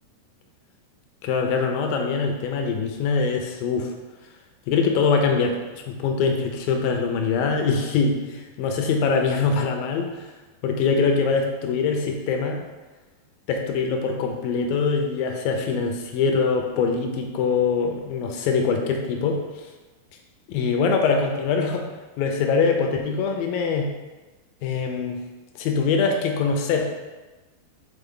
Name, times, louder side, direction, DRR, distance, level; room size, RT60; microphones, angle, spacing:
voice 1, 1.2-3.9 4.7-5.6 5.9-10.3 10.6-12.6 13.5-19.4 20.5-21.9 22.2-23.9 24.6-25.2 25.6-26.9, left 5 dB, 80° left, 2 dB, 2.1 m, -23 dB
8.0 x 3.9 x 3.8 m, 1.2 s
omnidirectional pair, 4.8 m